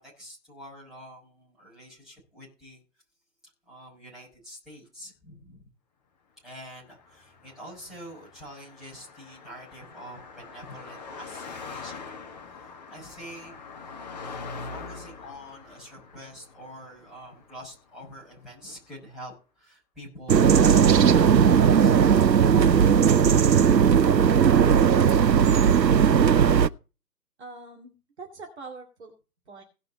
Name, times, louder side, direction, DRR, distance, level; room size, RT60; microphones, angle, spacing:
voice 1, 0.0-2.8 3.4-5.7 6.4-13.6 14.6-22.0, equal, ahead, -8 dB, 5.6 m, -46 dB
Car passing by, 6.8-18.3, left 4 dB, 25° left, 1.5 m, -43 dB
sound 1, 20.3-26.7, right 7 dB, 90° right, 0.7 m, -18 dB
voice 2, 27.4-29.1 29.5-29.6, right 3 dB, 40° right, 1 dB, 2.2 m, -43 dB
17.0 x 5.8 x 5.3 m, 0.33 s
figure-of-eight pair, 150°, 49 cm